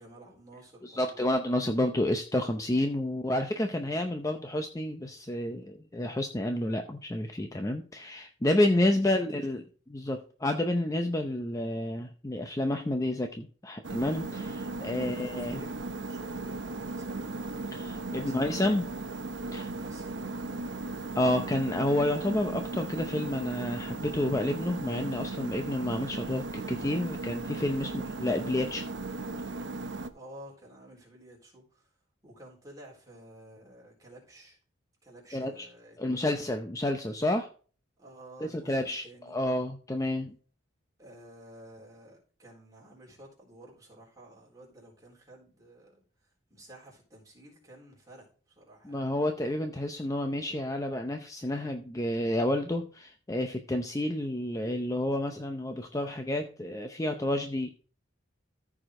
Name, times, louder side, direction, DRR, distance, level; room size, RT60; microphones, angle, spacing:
voice 1, 0.0-1.2 3.0-3.2 3.6-4.4 8.7-9.3 15.0-17.3 18.2-19.1 19.5-20.7 30.1-31.9 32.2-34.6 35.0-36.5 38.0-39.4 41.0-49.0, right 1 dB, 20° right, -3 dB, 4.0 m, -52 dB
voice 2, 0.8-9.6 9.9-15.6 17.7-18.8 19.5-19.6 21.1-28.8 35.3-35.7 36.0-37.5 38.5-40.3 48.8-57.7, left 1 dB, 15° left, 5 dB, 0.6 m, -30 dB
sound 1, 13.8-30.1, right 2 dB, 65° right, 0.8 m, -37 dB
14.0 x 5.0 x 3.7 m, 0.40 s
head